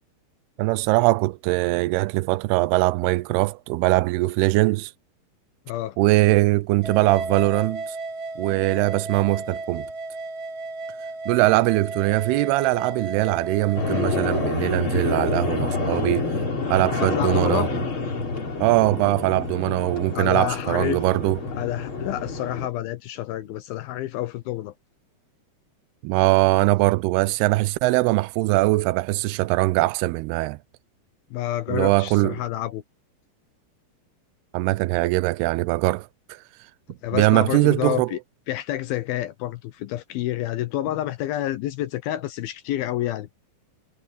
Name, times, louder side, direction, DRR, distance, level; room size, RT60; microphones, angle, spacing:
voice 1, 0.6-4.9 6.0-8.0 8.4-9.9 11.3-16.3 16.7-17.7 18.6-21.4 26.0-30.6 31.7-32.4 34.5-36.4 37.1-38.1, right 20 dB, 90° right, 2.6 m, -21 dB
voice 2, 5.7-6.0 17.0-17.7 20.1-21.0 21.6-24.7 31.3-32.8 37.0-38.2 38.5-43.3, left 14 dB, 75° left, 2.6 m, -28 dB
sound 1, 6.8-14.5, right 3 dB, 50° right, 1.6 m, -34 dB
sound 2, 13.8-22.7, left 4 dB, 35° left, 4.1 m, -28 dB
omnidirectional pair, 4.5 m